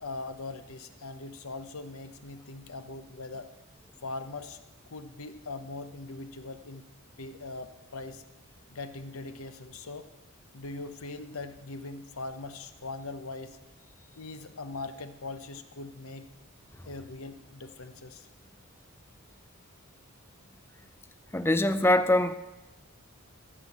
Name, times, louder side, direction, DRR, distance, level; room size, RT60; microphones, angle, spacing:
voice 1, 0.0-3.5 4.0-4.6 4.9-6.8 7.2-8.2 8.7-10.1 10.5-13.6 14.2-16.3 16.9-18.3, left 3 dB, 85° left, 0.9 m, -41 dB
voice 2, 21.3-22.3, left 1 dB, 10° left, 0.5 m, -23 dB
12.5 x 5.7 x 8.5 m
head